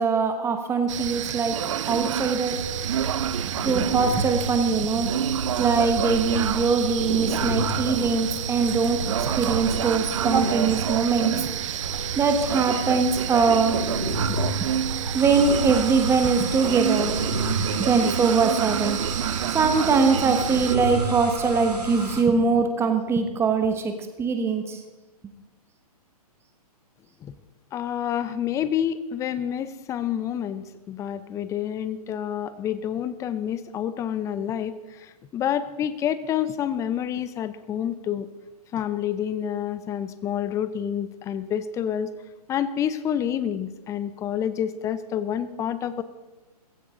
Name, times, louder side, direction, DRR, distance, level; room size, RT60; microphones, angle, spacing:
voice 1, 0.0-2.6 3.6-5.1 5.6-9.0 9.4-11.3 12.1-13.8 14.6-14.7 15.1-17.1 17.6-19.0 19.5-24.8, right 4 dB, 15° right, 6 dB, 1.3 m, -22 dB
sound 1, 0.9-20.7, right 10 dB, 50° right, 0.7 m, -29 dB
sound 2, 2.5-22.2, right 3 dB, 90° right, 2.2 m, -31 dB
voice 2, 27.7-38.3 38.7-42.1 42.5-46.0, left 9 dB, 15° left, 14 dB, 0.6 m, -28 dB
15.5 x 15.5 x 3.8 m, 1.1 s
figure-of-eight pair, 125°, 20 cm